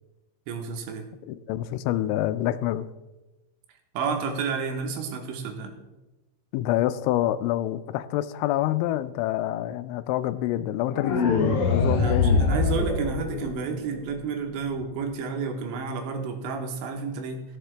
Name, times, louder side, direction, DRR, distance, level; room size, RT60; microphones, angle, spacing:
voice 1, 0.5-1.1 3.9-5.8 11.9-17.4, right 5 dB, 80° right, 4 dB, 3.3 m, -31 dB
voice 2, 1.3-2.9 6.5-12.5, left 13 dB, 90° left, 13 dB, 2.9 m, -27 dB
sound 1, 10.9-13.9, left 4 dB, 70° left, 2.3 m, -23 dB
16.0 x 7.3 x 3.4 m, 1.1 s
omnidirectional pair, 5.3 m